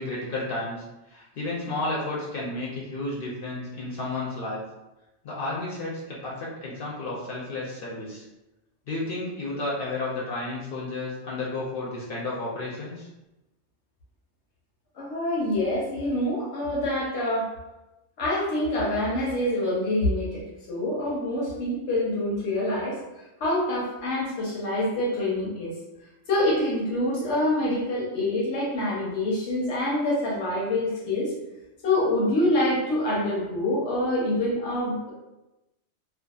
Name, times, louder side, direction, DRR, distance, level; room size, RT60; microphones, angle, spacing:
voice 1, 0.0-4.6 5.2-8.2 8.9-13.1, left 2 dB, 60° left, -4 dB, 0.7 m, -32 dB
voice 2, 15.0-17.5 18.2-23.0 23.4-25.8 26.3-31.3 31.8-35.1, left 1 dB, 90° left, -6 dB, 1.0 m, -26 dB
2.6 x 2.2 x 2.3 m, 0.97 s
omnidirectional pair, 1.2 m